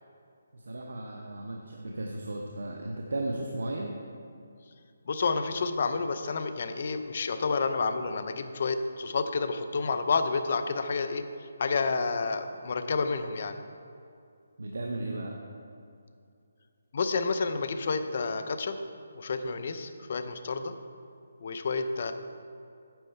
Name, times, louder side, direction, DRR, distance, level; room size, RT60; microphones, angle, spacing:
voice 1, 0.7-3.9 14.6-15.3, right 2 dB, 85° right, 1 dB, 0.8 m, -35 dB
voice 2, 5.1-13.6 16.9-18.8 19.1-20.7 21.4-22.1, left 4 dB, 45° left, 9 dB, 0.5 m, -30 dB
9.0 x 6.4 x 4.4 m, 2.5 s
hypercardioid pair, 165°, 0 cm